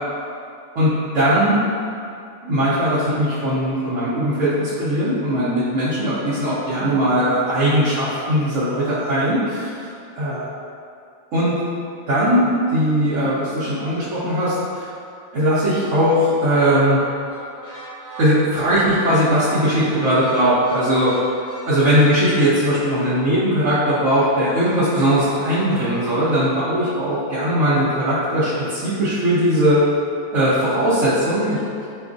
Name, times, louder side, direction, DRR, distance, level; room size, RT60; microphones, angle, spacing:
voice 1, 0.7-1.6 2.4-9.8 10.1-10.5 11.3-11.6 12.1-14.9 15.3-17.0 18.2-21.1 21.6-29.8 30.3-31.6, equal, 85° right, -12 dB, 1.1 m, -19 dB
sound 1, 17.3-26.4, right 1 dB, 25° right, 1.2 m, -38 dB
4.2 x 2.3 x 2.5 m, 2.4 s
omnidirectional pair, 1.3 m